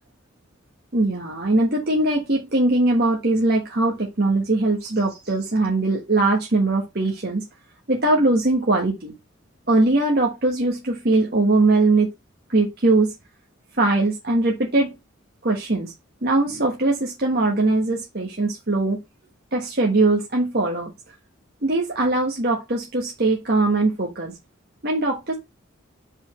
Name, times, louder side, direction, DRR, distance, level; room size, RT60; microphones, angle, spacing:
voice 1, 0.9-7.4 7.9-9.1 9.7-12.1 12.5-13.1 13.8-14.9 15.4-15.9 16.2-19.0 19.5-20.9 21.6-24.3 24.8-25.4, right 2 dB, 50° right, 1.3 m, -21 dB
5.2 x 4.3 x 5.8 m
head